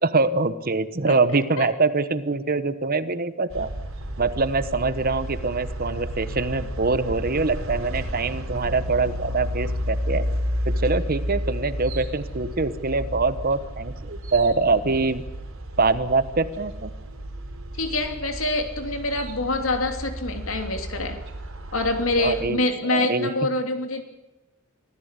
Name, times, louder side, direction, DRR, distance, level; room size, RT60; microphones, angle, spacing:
voice 1, 0.0-3.7 4.2-10.2 10.7-15.2 15.8-16.9 22.2-22.6 22.9-23.3, right 3 dB, 45° right, 13 dB, 1.1 m, -24 dB
sound 1, 3.5-22.4, equal, 70° right, 4.5 m, -32 dB
voice 2, 17.8-21.2 21.7-24.0, left 2 dB, 70° left, 6 dB, 2.9 m, -25 dB
24.0 x 15.0 x 8.3 m, 1.1 s
head